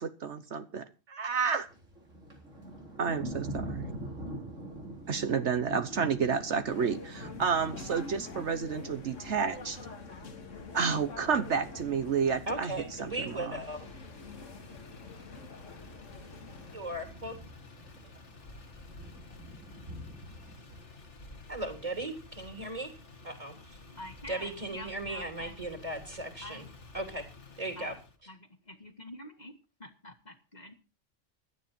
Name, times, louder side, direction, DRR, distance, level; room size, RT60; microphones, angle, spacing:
voice 1, 0.0-1.7 3.0-3.9 5.1-9.8 10.7-12.7 13.0-13.6, right 6 dB, 70° right, 10 dB, 1.3 m, -30 dB
Thunder, 1.6-20.8, right 1 dB, 85° right, 4.4 m, -46 dB
sound 1, 6.7-16.8, left 4 dB, 90° left, 2.1 m, -46 dB
voice 2, 12.5-13.9 16.7-17.4 21.5-22.9 23.2-23.8 24.3-26.6 26.9-27.2 27.6-27.9, right 1 dB, 30° right, 5 dB, 3.5 m, -37 dB
Motor vehicle (road), 13.5-28.2, left 3 dB, 70° left, 2.2 m, -52 dB
voice 3, 23.9-25.6 26.4-26.7 27.7-28.0 28.3-30.8, left 1 dB, 35° left, 5 dB, 2.1 m, -47 dB
16.5 x 12.0 x 4.4 m, 0.31 s
omnidirectional pair, 1.3 m